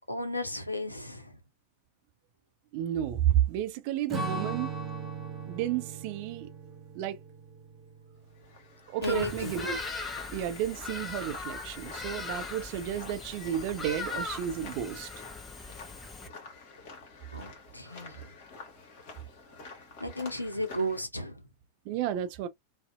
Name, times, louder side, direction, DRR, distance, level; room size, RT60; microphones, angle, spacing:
voice 1, 0.1-1.4 9.0-9.6 17.3-18.3 20.0-21.4, equal, 85° left, 0.5 m, -34 dB
voice 2, 2.7-4.7 5.4-6.5 6.9-7.2 8.9-9.8 10.3-15.1 21.9-22.5, right 11 dB, 45° right, 0.4 m, -31 dB
Strum, 4.1-8.8, right 3 dB, 15° right, 0.9 m, -39 dB
sound 1, 8.3-21.0, left 4 dB, 45° left, 1.0 m, -49 dB
Bird vocalization bird call bird song, 9.0-16.3, left 3 dB, 15° left, 0.6 m, -39 dB
2.6 x 2.0 x 2.3 m
figure-of-eight pair, 90°, 0 cm